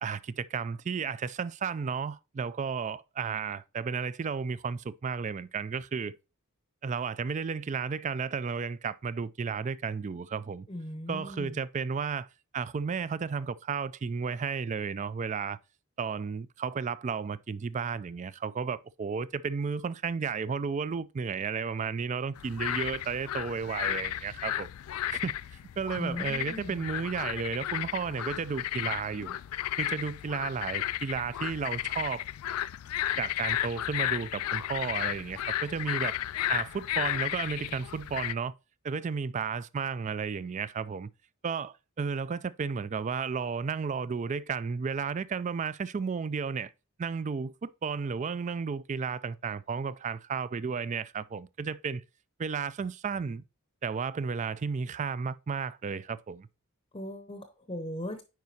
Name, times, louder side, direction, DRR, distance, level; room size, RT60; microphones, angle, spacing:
voice 1, 0.0-6.2 6.8-10.7 11.1-15.6 16.0-24.7 25.1-25.3 25.8-29.4 29.8-32.2 33.2-36.1 36.5-38.5 38.8-41.1 41.4-46.7 47.0-52.0 52.4-53.4 53.8-56.5, right 5 dB, 30° right, 0.3 m, -33 dB
voice 2, 10.7-11.6 25.9-26.8 56.9-58.2, left 1 dB, 25° left, 0.7 m, -38 dB
sound 1, 22.4-38.3, left 13 dB, 75° left, 0.3 m, -33 dB
9.3 x 4.7 x 2.8 m
head